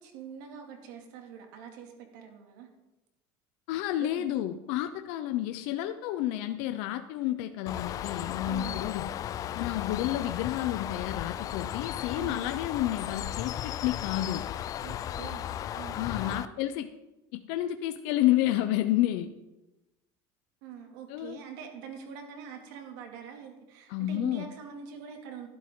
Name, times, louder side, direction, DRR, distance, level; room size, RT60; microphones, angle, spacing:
voice 1, 0.0-2.7 4.0-4.3 8.4-8.9 12.1-12.6 14.8-16.5 20.6-25.5, right 7 dB, 80° right, 3 dB, 2.5 m, -44 dB
voice 2, 3.7-9.1 9.6-14.4 16.0-16.9 17.3-19.3 21.1-21.4 23.9-24.5, left 14 dB, 70° left, 8 dB, 0.7 m, -30 dB
Bird, 7.7-16.5, left 11 dB, 35° left, 0.4 m, -35 dB
12.0 x 12.0 x 3.8 m, 1.0 s
cardioid pair, 140°, 10 cm